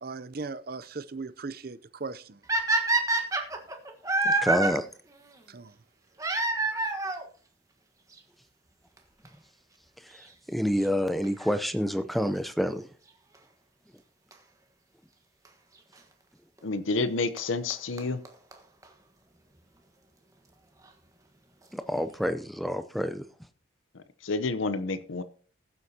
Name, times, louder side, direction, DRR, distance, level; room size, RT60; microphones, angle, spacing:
voice 1, 0.0-2.4 5.5-5.7, right 4 dB, 50° right, 0.6 m, -38 dB
sound 1, 2.5-4.7 6.2-7.2 8.2-8.3 9.0-9.1 9.2-9.3 11.2-11.5 14.3-14.4 15.4-15.5 17.0-17.1 17.4-17.5 17.7-17.8 18.0-18.1 18.2-18.3 18.5-18.6 18.8-18.9, right 2 dB, 15° right, 1.3 m, -26 dB
voice 2, 4.2-4.9 10.0-12.9 21.7-23.3, equal, ahead, 0.6 m, -28 dB
voice 3, 16.6-18.2 23.9-25.2, left 3 dB, 85° left, 0.8 m, -29 dB
20.0 x 8.0 x 2.9 m
head